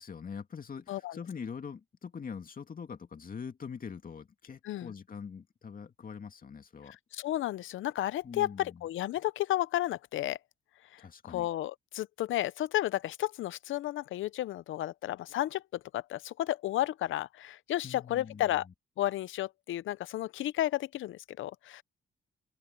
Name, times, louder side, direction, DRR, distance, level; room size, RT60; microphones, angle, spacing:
voice 1, 0.0-7.0 8.2-8.9 11.0-11.5 17.8-18.7, left 6 dB, 45° left, 2.4 m, -43 dB
voice 2, 7.1-10.4 10.9-11.0 11.3-18.7 19.0-21.8, left 14 dB, 75° left, 0.7 m, -32 dB
cardioid pair, 70°, 20 cm